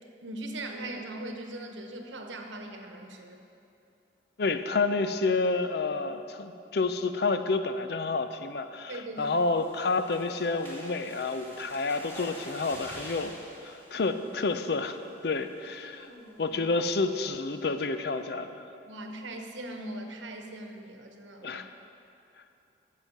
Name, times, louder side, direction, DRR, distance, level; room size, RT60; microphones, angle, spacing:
voice 1, 0.2-3.4 8.9-9.3 15.8-16.6 18.9-21.6, right 1 dB, 80° right, 4 dB, 1.1 m, -40 dB
voice 2, 4.4-13.4 13.6-16.1 16.4-18.6 21.4-21.7, left 3 dB, 55° left, 9 dB, 0.5 m, -29 dB
sound 1, 9.2-14.9 15.4-15.6 15.9-16.0 16.4-16.7, equal, 15° left, 2.5 m, -47 dB
12.0 x 7.4 x 5.3 m, 2.7 s
head